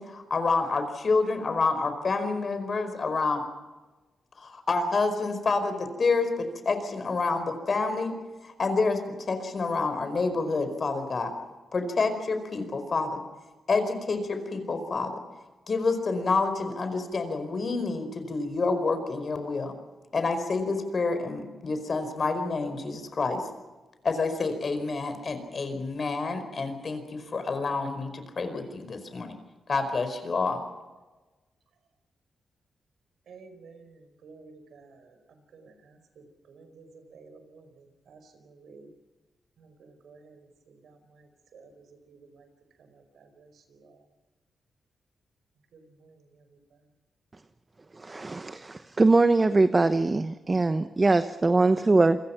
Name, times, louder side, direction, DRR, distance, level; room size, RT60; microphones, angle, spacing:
voice 1, 0.0-3.4 4.4-8.1 8.4-9.0 9.3-11.3 11.7-13.2 13.7-15.1 15.7-19.7 20.1-23.4 24.0-29.4 29.7-30.6, left 3 dB, 45° left, 8 dB, 4.8 m, -28 dB
voice 2, 33.3-35.2 35.5-38.9 39.6-42.5 42.8-44.0 45.7-46.4, right 4 dB, 80° right, 7 dB, 4.8 m, -53 dB
voice 3, 48.0-52.2, right 3 dB, 25° right, 10 dB, 1.0 m, -22 dB
28.5 x 22.5 x 5.9 m, 1.2 s
cardioid pair, 85°, 0 cm